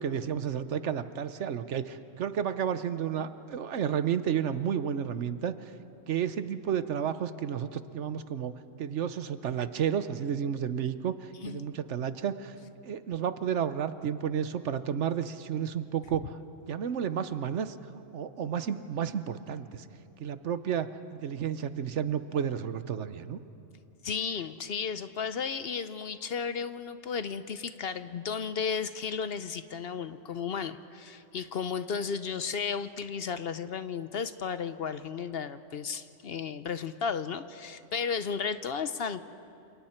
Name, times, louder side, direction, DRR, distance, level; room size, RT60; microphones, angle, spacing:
voice 1, 0.0-5.7 6.1-8.5 8.8-12.6 12.8-16.4 16.6-17.7 18.1-19.9 20.2-23.4, right 8 dB, 70° right, 12 dB, 1.1 m, -31 dB
voice 2, 24.0-39.2, left 6 dB, 60° left, 12 dB, 0.8 m, -34 dB
29.0 x 28.0 x 4.4 m, 2.7 s
omnidirectional pair, 1.3 m